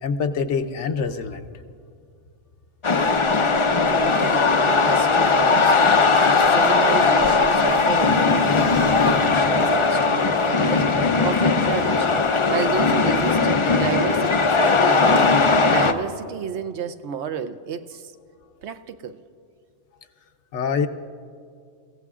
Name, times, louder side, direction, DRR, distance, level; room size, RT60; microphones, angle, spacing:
voice 1, 0.0-1.5 20.5-20.9, left 5 dB, 70° left, 8 dB, 1.0 m, -25 dB
sound 1, 2.8-15.9, left 4 dB, 40° left, 0.4 m, -19 dB
voice 2, 3.9-6.0 6.5-12.1 12.5-15.2 15.7-18.1 18.6-19.2, right 7 dB, 70° right, 10 dB, 0.9 m, -31 dB
29.5 x 16.0 x 2.4 m, 2.3 s
omnidirectional pair, 1.3 m